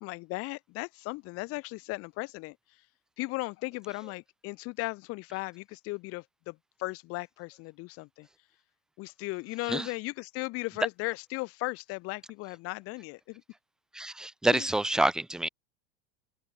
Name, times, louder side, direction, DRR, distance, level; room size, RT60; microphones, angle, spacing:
voice 1, 0.0-2.6 3.2-8.3 9.0-13.4 14.5-14.7, left 23 dB, 45° left, 1.0 m, -36 dB
voice 2, 13.9-15.5, right 2 dB, ahead, 0.5 m, -27 dB
open air
supercardioid pair, 125°, 31 cm